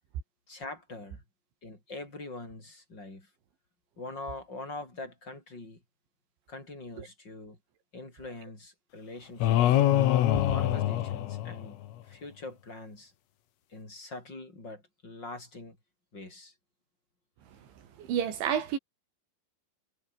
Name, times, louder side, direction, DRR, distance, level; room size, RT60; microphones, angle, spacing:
voice 1, 0.5-1.2 1.6-3.3 4.0-5.8 6.5-7.6 7.9-9.8 10.5-13.1 13.7-15.8 16.1-16.5, left 2 dB, 20° left, 8.1 m, -43 dB
sound 1, 9.4-11.9, left 13 dB, 80° left, 4.5 m, -24 dB
voice 2, 18.0-18.8, right 9 dB, 65° right, 5.6 m, -29 dB
omnidirectional pair, 5.8 m